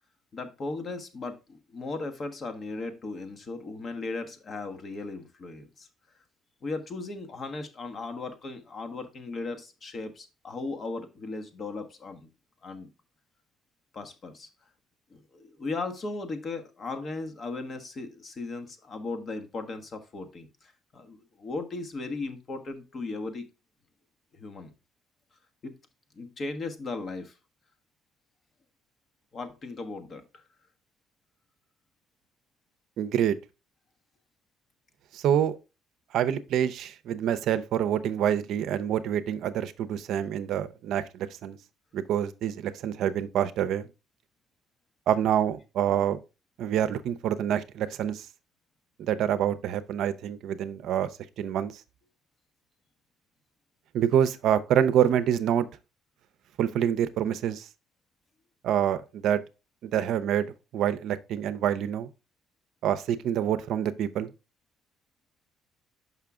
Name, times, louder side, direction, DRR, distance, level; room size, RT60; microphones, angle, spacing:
voice 1, 0.3-5.9 6.6-12.3 12.6-12.9 13.9-14.5 15.1-23.5 24.3-24.7 25.6-25.7 26.1-27.4 29.3-30.4, left 3 dB, 45° left, 1.2 m, -37 dB
voice 2, 33.0-33.4 35.1-35.6 36.1-41.6 41.9-43.9 45.1-46.2 46.6-48.3 49.0-51.1 51.4-51.7 53.9-55.7 56.6-57.7 58.6-59.4 59.8-60.5 60.7-62.1 62.8-64.3, right 10 dB, 70° right, 0.6 m, -26 dB
5.8 x 5.6 x 3.6 m
cardioid pair, 90°, 0 cm